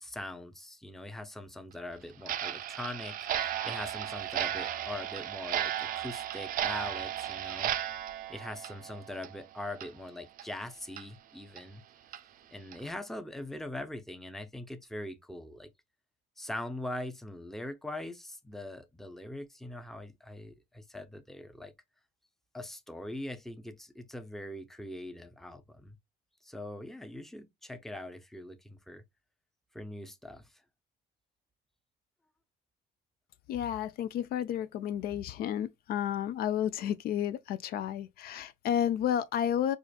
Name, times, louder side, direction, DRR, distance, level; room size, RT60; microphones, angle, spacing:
voice 1, 0.0-7.7 8.3-11.8 12.5-15.7 16.4-21.7 22.5-26.0 26.4-29.0 29.7-30.5, left 1 dB, ahead, 0.6 m, -42 dB
Clock, 2.2-9.5 9.8-9.9 10.4-10.5 11.0-11.1 11.6-11.7 12.1-12.2 12.7-12.9, right 11 dB, 55° right, 0.5 m, -35 dB
voice 2, 33.5-39.8, left 10 dB, 65° left, 0.4 m, -31 dB
4.8 x 2.5 x 2.3 m
cardioid pair, 110°, 17 cm